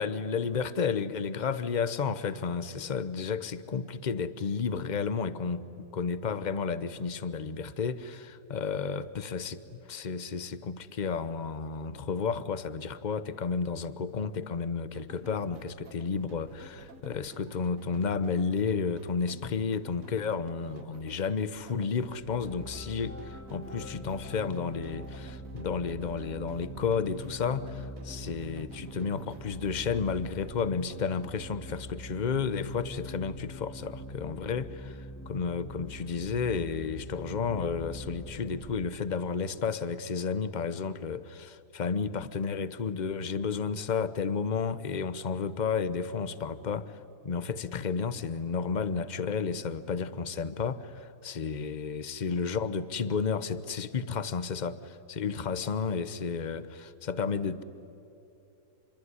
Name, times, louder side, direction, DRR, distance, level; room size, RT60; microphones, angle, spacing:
voice 1, 0.0-9.6 9.9-57.6, left 5 dB, 35° left, 14 dB, 0.8 m, -32 dB
sound 1, 14.9-31.6, right 4 dB, 60° right, 1.6 m, -53 dB
sound 2, 22.2-38.6, equal, 10° left, 1.5 m, -43 dB
27.0 x 22.5 x 9.8 m, 2.9 s
omnidirectional pair, 1.7 m